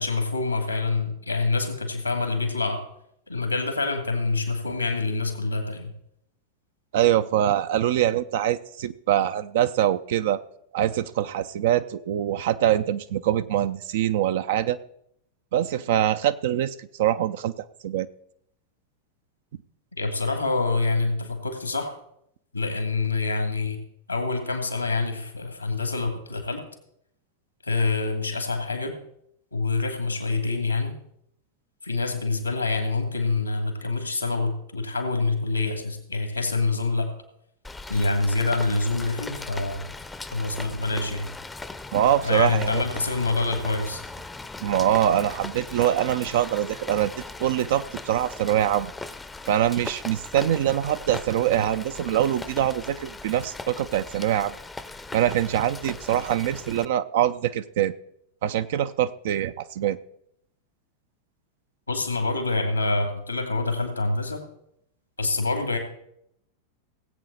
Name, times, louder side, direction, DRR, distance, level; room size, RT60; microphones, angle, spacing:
voice 1, 0.0-2.8 3.3-5.9 19.9-21.9 22.5-23.8 24.1-26.6 27.6-28.9 29.5-31.0 31.8-37.1 37.9-39.9 40.3-41.3 42.2-44.0 61.9-64.4 65.2-65.8, left 3 dB, 85° left, 5 dB, 2.3 m, -26 dB
voice 2, 6.9-10.4 10.7-14.8 15.5-17.5 17.8-18.1 41.9-42.8 44.6-47.1 47.4-48.9 49.5-54.5 55.1-57.9 58.4-60.0, right 11 dB, 55° right, 11 dB, 0.5 m, -24 dB
Rain, 37.6-56.8, left 3 dB, 10° left, 0.6 m, -39 dB
18.0 x 8.1 x 4.1 m, 0.73 s
figure-of-eight pair, 90°, 0 cm